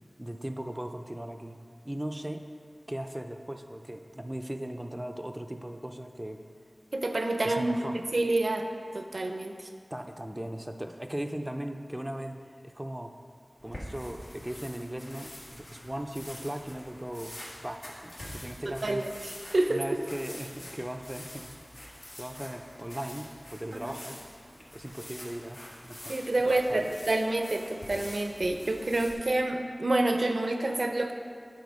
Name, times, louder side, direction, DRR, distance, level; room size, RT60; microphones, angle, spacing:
voice 1, 0.2-1.6 1.8-2.5 2.9-6.4 7.5-8.0 9.9-13.1 13.6-19.1 19.7-21.5 22.2-24.2 24.7-26.2 26.4-26.9, right 1 dB, 15° right, 6 dB, 0.5 m, -38 dB
voice 2, 6.9-8.7 8.9-9.7 18.7-19.1 19.5-19.8 23.7-24.0 26.1-31.1, right 2 dB, 75° right, 5 dB, 0.6 m, -28 dB
sound 1, 13.6-29.1, left 1 dB, 70° left, 1.7 m, -46 dB
9.4 x 4.3 x 5.3 m, 2.1 s
wide cardioid pair, 55°, 0 cm